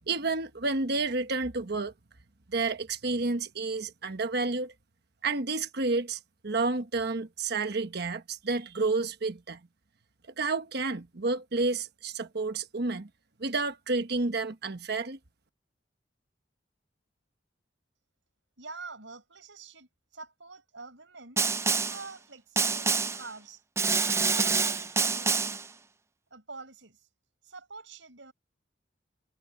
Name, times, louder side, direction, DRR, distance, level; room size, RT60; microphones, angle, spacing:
voice 1, 0.1-1.9 2.5-4.7 5.2-9.6 10.4-13.1 13.4-15.2, right 3 dB, 60° right, 1.2 m, -30 dB
voice 2, 18.6-21.4 21.8-23.6 24.0-25.7 26.3-27.1 27.4-28.3, right 4 dB, 90° right, 4.7 m, -46 dB
Snare drum, 21.4-22.1 22.6-23.3 23.8-25.7, right 5 dB, 15° right, 0.4 m, -27 dB
head